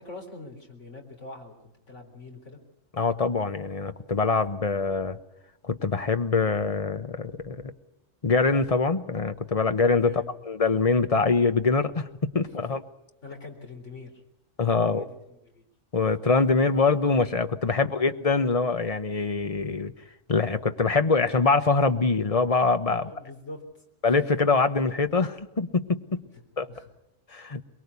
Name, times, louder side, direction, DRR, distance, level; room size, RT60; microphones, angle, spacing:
voice 1, 0.0-2.6 10.0-10.3 12.6-12.7 13.2-14.1 14.8-15.7 22.9-23.6 24.1-24.2 26.7-26.9, left 3 dB, 65° left, 2 dB, 4.1 m, -44 dB
voice 2, 3.0-5.2 5.6-7.7 8.2-12.1 12.3-12.8 14.6-15.0 15.9-19.9 20.3-23.1 24.0-26.2 26.6-26.7 27.3-27.6, left 4 dB, 30° left, 9 dB, 1.0 m, -24 dB
23.0 x 22.5 x 8.3 m, 0.85 s
omnidirectional pair, 1.3 m